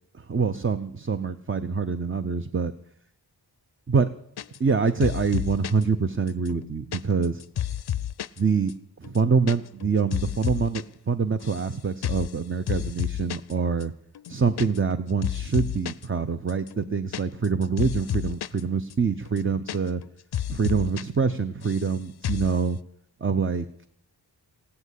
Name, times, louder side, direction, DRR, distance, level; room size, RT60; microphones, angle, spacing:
voice 1, 0.1-2.7 3.9-4.1 4.6-7.4 8.4-8.7 9.0-13.9 14.3-20.0 20.5-22.8 23.2-23.7, right 5 dB, 30° right, 10 dB, 0.6 m, -25 dB
sound 1, 4.4-4.8 5.0-5.8 6.3-8.4 8.7-8.8 9.0-9.6 9.8-10.8 11.1-11.7 12.0-12.3 12.7-13.5 13.8-13.9 14.2-15.0 15.2-16.1 16.5-18.6 18.9-19.0 19.3-20.1 20.3-21.0 21.3-21.9 22.2-22.6, left 10 dB, 65° left, 0.5 m, -31 dB
16.5 x 9.8 x 8.2 m, 0.71 s
wide cardioid pair, 105°, 43 cm